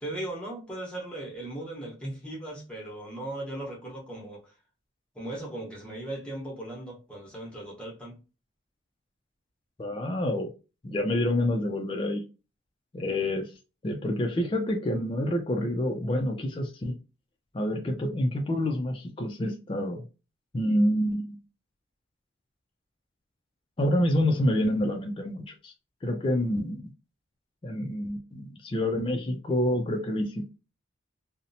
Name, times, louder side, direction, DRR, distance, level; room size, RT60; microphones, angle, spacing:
voice 1, 0.0-4.5 5.1-8.2, right 1 dB, 5° left, 0.8 m, -38 dB
voice 2, 9.8-10.5 10.8-12.2 12.9-13.5 13.8-17.0 17.5-20.0 20.5-21.4 23.8-25.7 26.0-26.8 27.6-30.6, left 1 dB, 25° left, 0.3 m, -27 dB
2.7 x 2.0 x 2.6 m
head